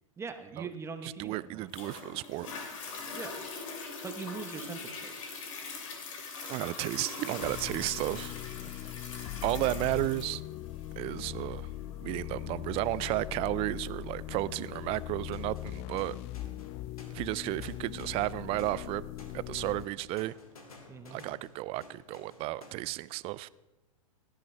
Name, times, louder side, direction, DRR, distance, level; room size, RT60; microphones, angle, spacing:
voice 1, 0.2-1.7 3.1-3.5 4.0-5.4 8.7-9.2 20.9-21.2, right 5 dB, 15° right, 1.0 m, -42 dB
voice 2, 1.2-2.5 6.4-8.3 9.4-10.4 11.0-11.7 12.0-16.2 17.1-19.0 19.3-20.3 21.1-23.5, right 17 dB, 30° right, 0.4 m, -33 dB
Toilet flush, 1.7-14.7 15.3-15.4, left 4 dB, 65° left, 2.9 m, -43 dB
sound 1, 7.4-19.9, left 14 dB, 35° left, 0.4 m, -40 dB
sound 2, 13.0-13.6 14.3-22.8, left 2 dB, 85° left, 2.4 m, -55 dB
17.0 x 12.5 x 3.4 m
hypercardioid pair, 110°, 18 cm